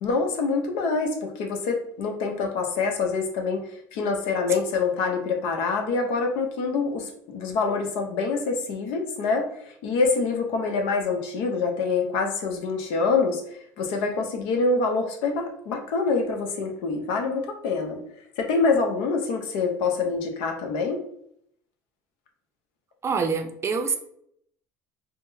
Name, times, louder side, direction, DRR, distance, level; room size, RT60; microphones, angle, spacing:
voice 1, 0.0-3.6 3.9-9.5 9.8-13.4 13.8-18.0 18.4-21.0, left 4 dB, 70° left, 3 dB, 0.6 m, -25 dB
voice 2, 23.0-24.0, right 5 dB, 30° right, 4 dB, 0.5 m, -25 dB
3.5 x 2.1 x 2.6 m, 0.71 s
supercardioid pair, 80°, 9 cm